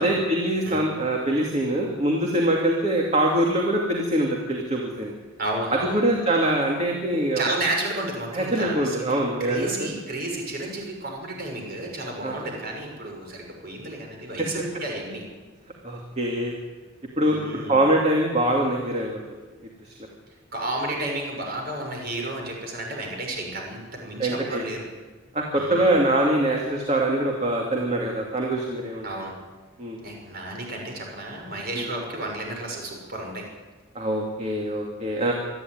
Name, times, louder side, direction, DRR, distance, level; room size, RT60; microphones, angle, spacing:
voice 1, 0.0-5.1 5.7-7.5 8.3-9.9 12.2-12.4 15.8-16.5 17.2-17.4 17.7-19.2 19.8-19.9 24.2-24.6 25.3-29.1 29.8-30.0 31.8-31.9 33.9-35.3, right 1 dB, 30° right, 0 dB, 2.6 m, -23 dB
voice 2, 5.4-6.0 7.4-15.2 17.3-17.8 20.5-24.8 25.5-25.9 29.0-29.3 30.0-33.5, right 2 dB, 50° right, 1 dB, 6.0 m, -32 dB
26.5 x 11.0 x 9.5 m, 1.3 s
head